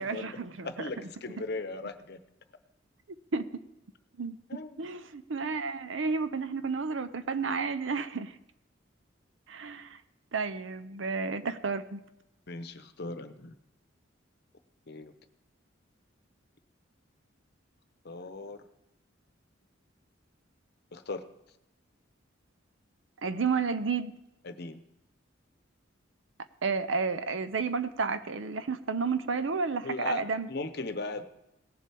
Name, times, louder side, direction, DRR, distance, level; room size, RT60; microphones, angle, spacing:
voice 1, 0.0-0.7 3.3-3.5 4.2-4.4 4.8-8.3 9.5-10.0 10.3-12.0 23.2-24.1 26.6-30.5, right 4 dB, 75° right, 0.7 m, -31 dB
voice 2, 0.6-2.2 4.5-4.9 12.5-13.5 14.9-15.1 18.0-18.6 20.9-21.2 24.4-24.8 29.8-31.2, left 3 dB, 55° left, 0.8 m, -38 dB
18.0 x 7.6 x 3.4 m
head